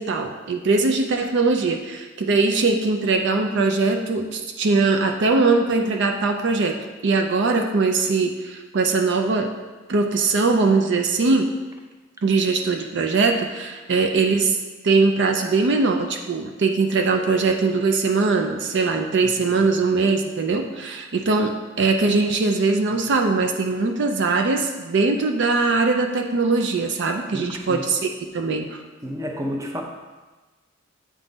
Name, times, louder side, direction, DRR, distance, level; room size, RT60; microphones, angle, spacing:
voice 1, 0.0-6.8 7.0-9.5 9.9-11.5 12.2-14.6 14.8-28.8, right 3 dB, 60° right, 4 dB, 0.5 m, -21 dB
voice 2, 19.2-19.6 27.3-27.9 29.0-29.8, equal, 15° right, 1 dB, 0.6 m, -31 dB
8.3 x 3.7 x 3.9 m, 1.2 s
head